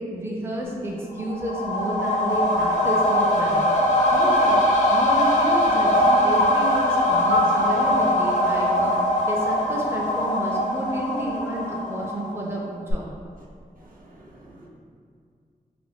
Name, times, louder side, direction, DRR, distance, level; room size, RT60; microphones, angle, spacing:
voice 1, 0.0-3.6 4.1-4.6 4.9-8.9 9.3-13.1, right 1 dB, 15° right, -3 dB, 0.4 m, -30 dB
sound 1, 1.1-12.6 12.9-13.0, left 1 dB, 50° left, 0.4 m, -21 dB
voice 2, 7.1-7.6 13.8-14.7, right 2 dB, 65° right, -5 dB, 0.5 m, -32 dB
2.4 x 2.1 x 3.3 m, 2.2 s
wide cardioid pair, 70°, 15 cm